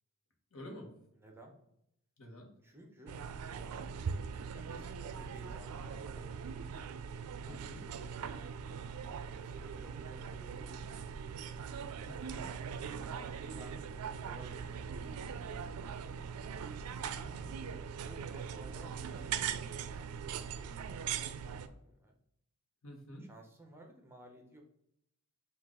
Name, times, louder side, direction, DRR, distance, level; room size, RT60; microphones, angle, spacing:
voice 1, 0.5-0.9 2.2-2.5 7.4-7.8 12.0-12.5 17.0-17.4 22.8-23.3, equal, 65° left, 2 dB, 1.0 m, -49 dB
voice 2, 1.1-1.5 2.6-3.2 3.4-4.0 4.5-6.5 7.5-8.5 9.2-11.4 12.8-14.9 16.0-16.3 17.2-17.6 18.0-21.0 21.3-22.1 23.2-24.6, right 1 dB, 10° right, 2 dB, 0.6 m, -56 dB
sound 1, 3.1-21.7, right 7 dB, 75° right, 0.4 m, -41 dB
5.6 x 2.4 x 3.6 m, 0.76 s
head